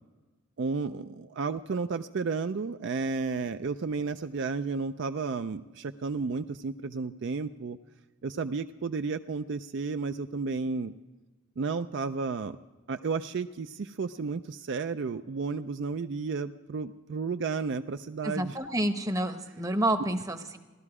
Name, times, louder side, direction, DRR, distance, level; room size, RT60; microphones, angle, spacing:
voice 1, 0.6-7.8 8.2-10.9 11.6-12.6 12.9-18.6, right 4 dB, 55° right, 9 dB, 0.4 m, -32 dB
voice 2, 18.2-20.6, right 1 dB, 15° right, 7 dB, 0.8 m, -29 dB
17.0 x 12.0 x 4.8 m, 1.2 s
head